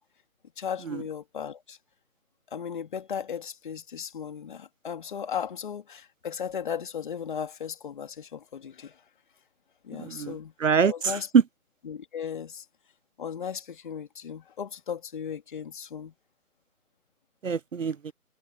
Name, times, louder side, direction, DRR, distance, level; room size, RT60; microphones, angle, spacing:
voice 1, 0.6-1.8 2.5-9.0 9.8-10.5 10.9-11.3 11.9-12.6 13.2-16.1, left 7 dB, 35° left, 3.1 m, -36 dB
voice 2, 10.0-11.4 17.4-18.1, right 6 dB, 60° right, 0.8 m, -24 dB
figure-of-eight pair, 155°, 44 cm